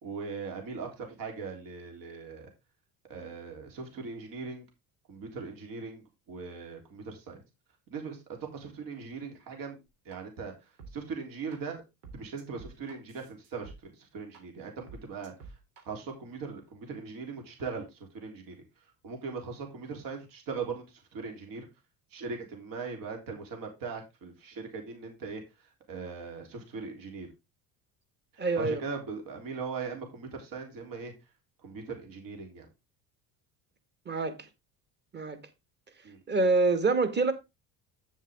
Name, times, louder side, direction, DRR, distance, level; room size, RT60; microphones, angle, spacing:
voice 1, 0.0-2.5 3.1-4.6 5.1-7.4 7.9-8.2 8.5-9.8 10.1-11.8 12.1-15.5 15.8-18.6 19.0-21.7 22.1-27.3 28.3-31.1 31.6-32.7 36.0-36.2, right 4 dB, 65° right, 3.6 m, -40 dB
sound 1, 9.9-10.2 10.8-10.9 11.5-11.6 12.0-13.8 14.3-14.4 14.9-15.8, right 4 dB, 90° right, 3.4 m, -48 dB
voice 2, 28.4-28.8 34.1-34.4 35.1-35.4 36.3-37.3, right 3 dB, 30° right, 1.8 m, -26 dB
8.9 x 7.3 x 3.6 m
cardioid pair, 110°, 37 cm